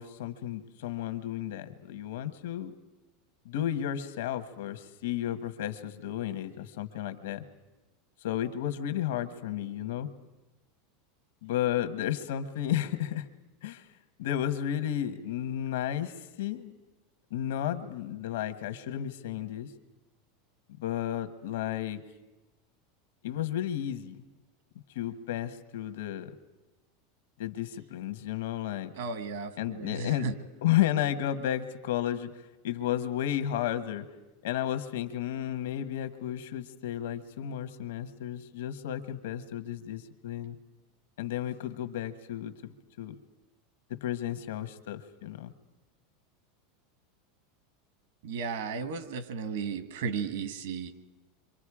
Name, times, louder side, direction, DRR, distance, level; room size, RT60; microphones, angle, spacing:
voice 1, 0.0-2.7 3.4-7.4 8.2-10.1 11.4-13.3 13.6-13.9 14.2-16.7 17.3-19.7 20.8-22.0 23.2-24.1 24.9-26.3 27.4-28.9 29.6-30.3 30.6-32.3 32.6-34.0 34.4-40.6 41.2-43.1 43.9-45.5, left 11 dB, 80° left, 10 dB, 1.3 m, -32 dB
voice 2, 29.0-30.3 48.2-50.9, right 5 dB, 75° right, 11 dB, 1.6 m, -34 dB
27.0 x 25.0 x 4.9 m, 1.1 s
supercardioid pair, 170°, 0 cm